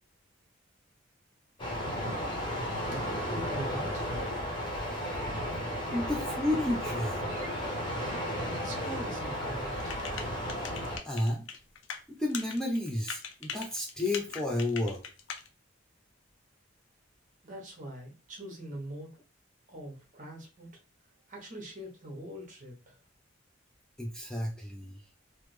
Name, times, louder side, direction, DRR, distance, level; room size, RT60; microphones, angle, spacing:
sound 1, 1.6-11.0, equal, 25° left, 1.0 m, -34 dB
voice 1, 2.8-4.1 5.9-6.0 8.6-10.0 17.4-19.2 19.7-20.8 21.3-23.0, right 1 dB, 40° right, 0 dB, 1.1 m, -43 dB
voice 2, 5.9-7.3 11.0-11.5 12.1-15.0 24.0-25.0, left 1 dB, 5° left, -2 dB, 0.4 m, -31 dB
sound 2, 9.8-12.0 12.3-15.5, left 6 dB, 75° left, 0.5 m, -40 dB
3.3 x 2.1 x 3.1 m, 0.34 s
head